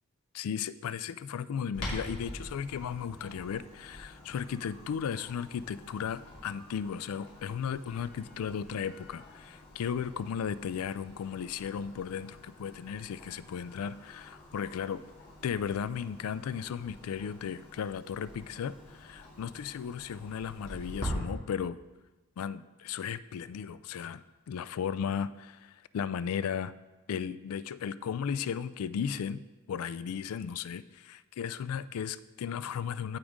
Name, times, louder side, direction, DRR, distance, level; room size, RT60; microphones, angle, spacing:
voice 1, 0.3-15.0 15.4-21.8 22.4-26.7 27.1-33.2, left 7 dB, 80° left, 16 dB, 0.3 m, -35 dB
Clock, 1.7-21.1, equal, 55° left, 2.7 m, -46 dB
14.5 x 5.1 x 3.6 m, 1.2 s
head